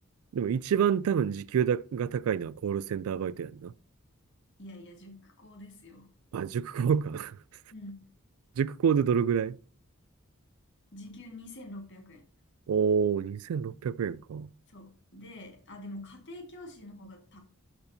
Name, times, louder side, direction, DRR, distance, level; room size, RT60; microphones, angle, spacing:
voice 1, 0.3-3.7 6.3-7.4 8.6-9.6 12.7-14.5, right 7 dB, 90° right, 0.3 m, -28 dB
voice 2, 4.6-6.1 7.7-8.1 10.9-12.2 14.7-17.4, left 1 dB, 60° left, 1.8 m, -46 dB
11.5 x 4.4 x 2.7 m
head